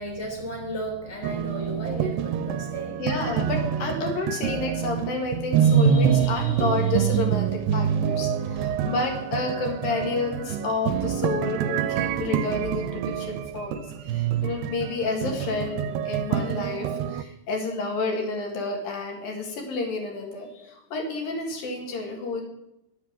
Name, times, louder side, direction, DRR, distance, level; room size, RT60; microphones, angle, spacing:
voice 1, 0.0-3.0, equal, 10° left, -1 dB, 2.8 m, -34 dB
Love in the Bar - Jazz Piano, 1.2-17.2, right 8 dB, 80° right, 2.2 m, -26 dB
voice 2, 3.0-22.4, left 3 dB, 80° left, 1 dB, 3.8 m, -30 dB
11.5 x 8.1 x 7.5 m, 0.85 s
omnidirectional pair, 4.1 m